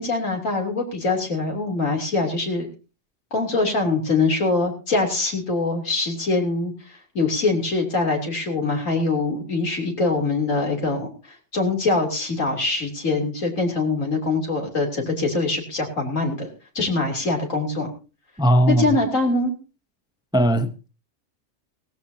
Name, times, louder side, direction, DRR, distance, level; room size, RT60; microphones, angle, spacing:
voice 1, 0.0-2.7 3.3-16.5 16.8-17.9 18.7-19.5, left 3 dB, 90° left, 3.6 m, -23 dB
voice 2, 18.4-18.8 20.3-20.9, right 1 dB, 5° right, 0.7 m, -18 dB
17.5 x 16.0 x 2.8 m
omnidirectional pair, 1.3 m